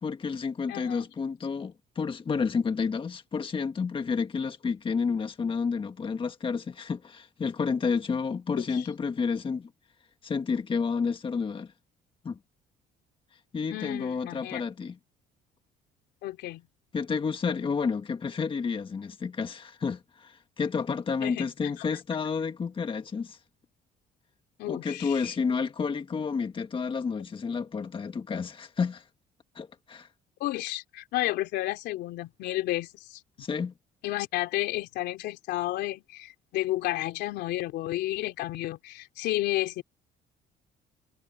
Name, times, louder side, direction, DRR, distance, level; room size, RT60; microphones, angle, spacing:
voice 1, 0.0-9.7 10.2-11.7 12.2-12.4 13.5-15.0 16.9-23.4 24.7-29.0 29.5-30.1 33.4-33.7, left 5 dB, 30° left, 1.7 m, -30 dB
voice 2, 0.7-1.1 8.6-8.9 13.7-14.6 16.2-16.7 21.2-21.5 21.8-21.9 24.6-25.3 30.4-33.2 34.0-39.8, left 16 dB, 85° left, 3.4 m, -32 dB
cardioid pair, 110°, 17 cm